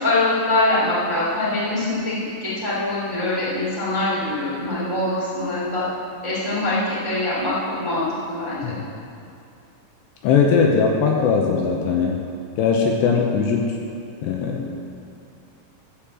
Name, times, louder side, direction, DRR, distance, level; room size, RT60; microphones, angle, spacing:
voice 1, 0.0-5.8 6.2-8.8, left 2 dB, 10° right, -9 dB, 1.9 m, -23 dB
voice 2, 10.2-12.2 12.6-13.8 14.2-14.6, left 5 dB, 75° left, 0 dB, 2.8 m, -19 dB
14.0 x 5.1 x 7.3 m, 2.6 s
omnidirectional pair, 5.3 m